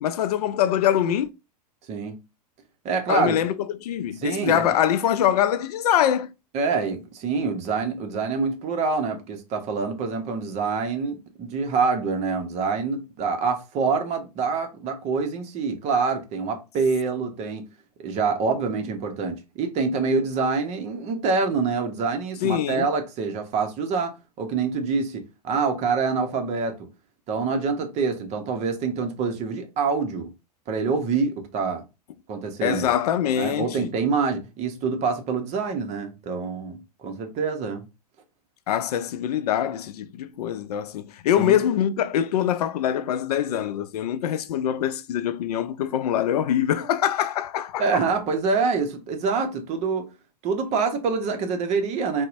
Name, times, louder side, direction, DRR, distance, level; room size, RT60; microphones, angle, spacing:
voice 1, 0.0-1.3 3.1-6.3 22.4-22.9 32.6-33.9 38.7-48.0, left 10 dB, 70° left, 0.4 m, -24 dB
voice 2, 1.9-2.2 2.8-3.4 4.2-4.7 6.5-17.7 18.0-26.9 27.3-30.3 30.7-31.8 32.3-32.9 33.4-37.8 41.4-41.6 47.8-50.1 50.4-52.3, right 4 dB, 35° right, 0.7 m, -26 dB
4.0 x 2.1 x 2.5 m
hypercardioid pair, 115°, 21 cm